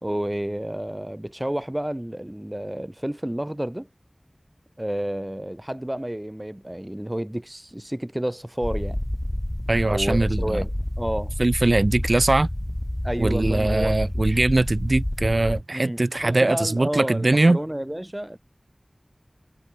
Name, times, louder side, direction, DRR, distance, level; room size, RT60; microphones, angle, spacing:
voice 1, 0.0-3.9 4.8-9.0 9.9-11.3 13.0-14.0 15.7-18.4, right 1 dB, 20° right, 3.1 m, -30 dB
sound 1, 8.6-15.6, left 1 dB, 20° left, 3.9 m, -28 dB
voice 2, 9.7-10.4 11.4-12.5 13.2-17.6, right 2 dB, 60° right, 1.8 m, -21 dB
wide cardioid pair, 45°, 0 cm